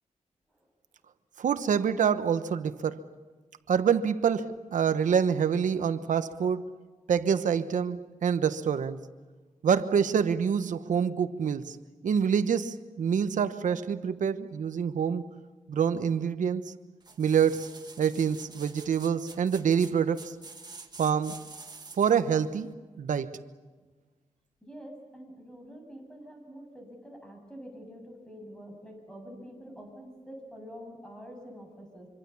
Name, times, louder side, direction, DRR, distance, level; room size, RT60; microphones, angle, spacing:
voice 1, 1.4-3.0 3.7-6.7 7.1-9.1 9.6-11.8 12.0-15.3 15.7-16.7 17.2-20.3 21.0-21.5 22.0-23.4, right 7 dB, 85° right, 1.1 m, -26 dB
sound 1, 17.0-22.3 22.7-22.8, right 4 dB, 35° right, 2.0 m, -47 dB
voice 2, 24.6-32.1, equal, 5° left, 7.6 m, -46 dB
25.5 x 25.5 x 7.2 m
wide cardioid pair, 125°, 13 cm